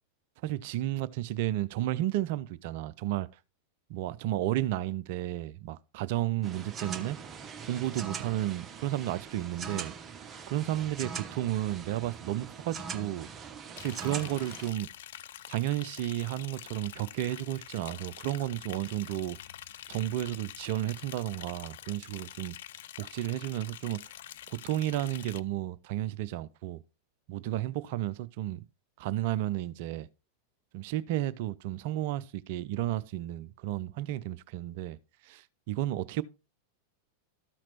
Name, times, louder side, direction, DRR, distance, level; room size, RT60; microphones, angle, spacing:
voice 1, 0.4-3.3 3.9-7.2 7.7-9.9 10.5-13.3 13.8-14.9 15.5-19.4 19.9-22.6 23.0-24.0 24.5-26.8 27.3-28.6 29.0-30.1 30.7-35.0 35.2-36.2, right 14 dB, 50° right, 0.4 m, -32 dB
sound 1, 6.4-14.7, right 5 dB, 20° right, 0.8 m, -42 dB
Liquid, 13.8-25.4, left 12 dB, 55° left, 0.4 m, -46 dB
13.0 x 5.8 x 2.9 m
figure-of-eight pair, 90°, 0 cm